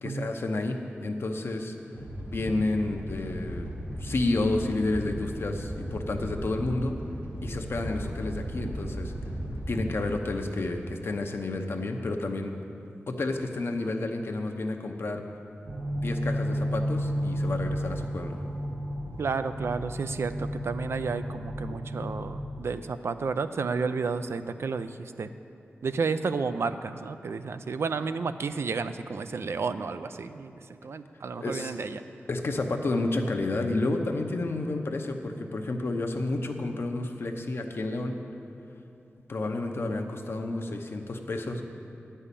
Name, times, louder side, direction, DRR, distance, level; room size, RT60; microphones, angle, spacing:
voice 1, 0.0-1.7 2.2-3.7 4.0-6.9 7.4-9.1 9.7-12.5 13.1-15.2 15.9-18.4 31.4-31.7 32.3-38.2 39.3-41.6, left 2 dB, 65° left, 3 dB, 0.8 m, -30 dB
Animal, 1.9-10.1, equal, 90° right, 2.1 m, -36 dB
sound 1, 15.7-22.4, equal, 50° right, 1.1 m, -32 dB
voice 2, 19.2-25.3 25.8-32.0, right 4 dB, 70° right, 10 dB, 0.4 m, -31 dB
10.0 x 5.5 x 8.3 m, 2.7 s
wide cardioid pair, 75°, 4 cm